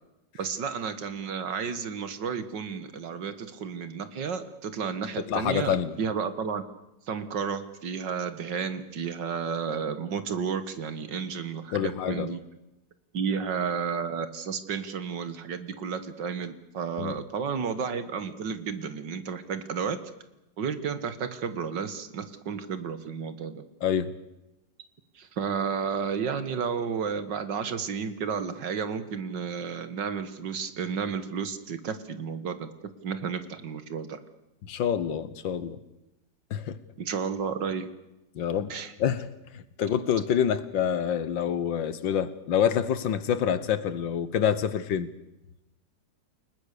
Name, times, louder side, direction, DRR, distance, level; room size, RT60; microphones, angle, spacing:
voice 1, 0.4-6.6 7.1-12.4 13.1-20.0 20.6-23.6 25.2-32.7 33.0-34.2 37.0-37.9 38.7-38.9, right 6 dB, 75° right, 11 dB, 2.2 m, -32 dB
voice 2, 5.3-6.0 11.7-12.3 17.0-17.1 23.8-24.1 34.7-35.8 36.5-36.8 38.4-38.7 39.0-39.3 39.5-45.1, left 8 dB, 85° left, 15 dB, 1.9 m, -27 dB
29.5 x 19.0 x 6.8 m, 0.94 s
omnidirectional pair, 2.0 m